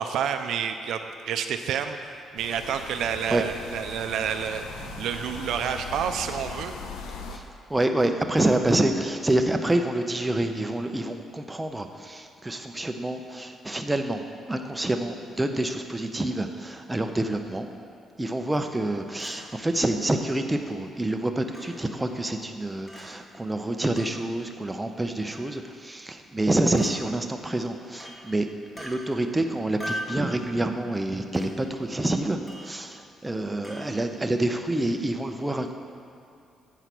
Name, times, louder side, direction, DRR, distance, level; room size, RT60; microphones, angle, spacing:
voice 1, 0.0-2.0 2.3-6.7, right 8 dB, 80° right, 7 dB, 0.4 m, -29 dB
sound 1, 2.4-7.4, left 4 dB, 90° left, 0.6 m, -39 dB
voice 2, 7.7-14.2 14.5-17.7 18.2-28.5 28.7-35.7, right 1 dB, 15° right, 5 dB, 0.6 m, -27 dB
Chink clink, 19.2-19.4 20.3-20.4 21.5-21.7 22.9-23.0 24.0-24.1 25.3-25.5 26.8-26.9 28.0-28.2 28.8-28.9 29.8-30.2 31.3-31.5 32.5-32.7 33.6-33.8, equal, 30° left, 1.9 m, -37 dB
8.1 x 4.7 x 5.9 m, 2.5 s
cardioid pair, 90°, 0 cm